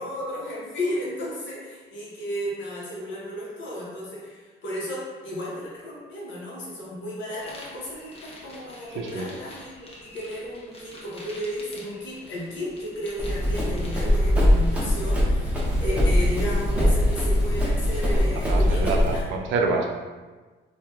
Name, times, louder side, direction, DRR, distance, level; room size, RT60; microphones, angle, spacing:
voice 1, 0.0-19.3, equal, 70° left, -5 dB, 1.0 m, -33 dB
sound 1, 7.4-14.9, left 1 dB, 30° left, 0.6 m, -46 dB
voice 2, 9.0-9.3 16.8-17.0 18.1-19.9, right 3 dB, 70° right, 1 dB, 0.5 m, -28 dB
Run, 13.2-19.2, left 1 dB, 5° right, 0.7 m, -22 dB
2.9 x 2.4 x 2.3 m, 1.3 s
cardioid pair, 90°, 20 cm